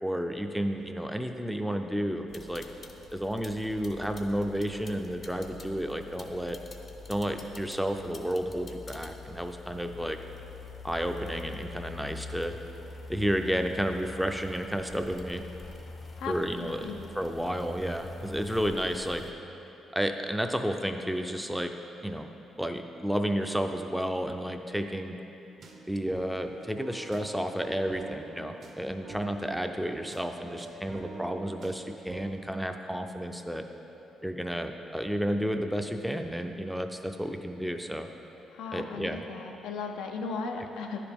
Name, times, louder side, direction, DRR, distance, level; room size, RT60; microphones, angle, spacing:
voice 1, 0.0-2.7 3.1-6.6 7.1-10.2 10.8-12.6 13.1-15.4 16.3-16.9 17.1-19.3 19.9-21.7 22.0-22.3 22.6-25.2 25.9-33.6 34.2-38.1 38.7-39.2 40.6-40.7, equal, ahead, 5 dB, 0.4 m, -31 dB
sound 1, 2.3-19.3, left 3 dB, 40° left, 0.6 m, -45 dB
voice 2, 16.2-17.1 38.5-41.1, left 4 dB, 90° left, 3 dB, 0.5 m, -37 dB
sound 2, 25.6-32.2, right 3 dB, 55° right, 0.8 m, -47 dB
9.9 x 4.9 x 3.5 m, 3.0 s
cardioid pair, 90°, 0 cm